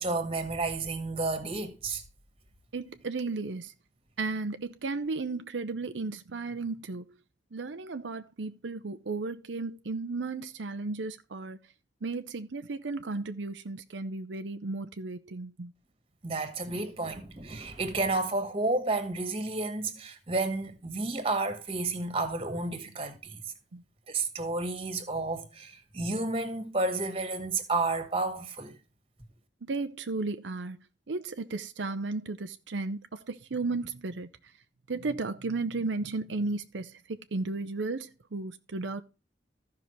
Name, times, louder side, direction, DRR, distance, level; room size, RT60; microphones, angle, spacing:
voice 1, 0.0-2.0 16.2-23.4 24.1-28.8, right 2 dB, 30° right, 1.9 m, -31 dB
voice 2, 2.7-3.7 4.2-7.1 7.5-11.6 12.0-15.7 23.7-23.8 29.6-30.8 31.1-34.3 34.9-39.0, right 3 dB, 85° right, 0.7 m, -34 dB
15.0 x 5.8 x 3.1 m
head